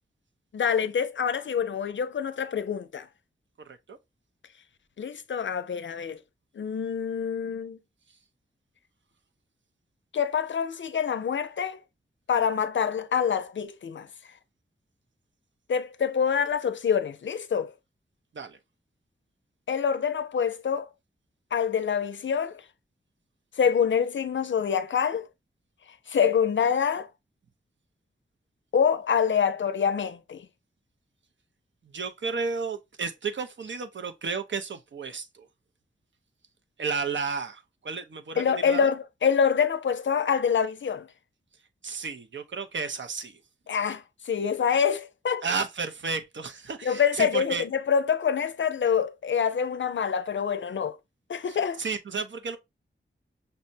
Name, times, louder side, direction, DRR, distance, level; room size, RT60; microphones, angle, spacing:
voice 1, 0.5-3.1 5.0-6.2 6.6-7.8 10.1-11.8 12.3-14.1 15.7-17.7 19.7-20.9 21.5-22.6 23.6-25.3 26.1-27.1 28.7-30.5 38.4-41.1 43.7-45.4 46.8-51.0 51.3-51.8, left 7 dB, 65° left, 0.4 m, -26 dB
voice 2, 31.9-35.5 36.8-38.9 41.8-43.3 45.4-47.6 51.8-52.6, right 5 dB, 65° right, 0.6 m, -32 dB
5.4 x 2.1 x 2.6 m
wide cardioid pair, 60°, 21 cm